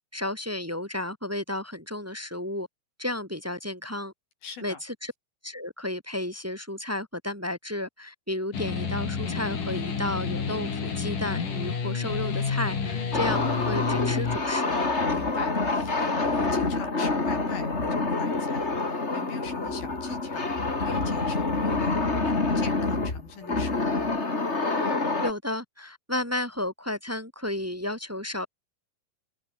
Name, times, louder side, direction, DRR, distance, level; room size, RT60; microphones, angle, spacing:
voice 1, 0.1-2.7 3.0-4.1 4.6-5.1 5.4-13.4 13.7-14.8 24.7-28.5, left 1 dB, 5° right, 5.2 m, -33 dB
voice 2, 4.4-4.8 12.9-13.2 15.1-20.5 20.8-24.3, left 5 dB, 80° left, 6.6 m, -42 dB
sound 1, 8.5-14.4, left 5 dB, 60° left, 5.9 m, -30 dB
sound 2, 13.1-25.3, left 3 dB, 20° left, 2.8 m, -27 dB
omnidirectional pair, 4.2 m